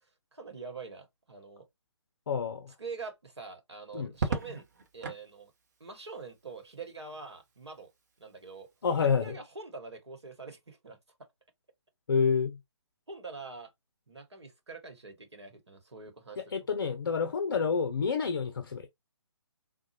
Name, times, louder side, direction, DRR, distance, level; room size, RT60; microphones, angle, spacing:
voice 1, 0.3-1.6 2.8-4.7 4.9-5.5 5.8-7.9 8.2-11.0 13.1-13.7 14.1-16.6, right 4 dB, 70° right, 1.1 m, -45 dB
voice 2, 2.3-2.7 3.9-4.1 8.8-9.3 12.1-12.6 16.5-18.9, left 5 dB, 50° left, 0.5 m, -28 dB
Crackle, 4.1-5.3 6.9-7.4, right 4 dB, 40° right, 0.8 m, -35 dB
3.7 x 2.2 x 2.8 m
figure-of-eight pair, 145°, 15 cm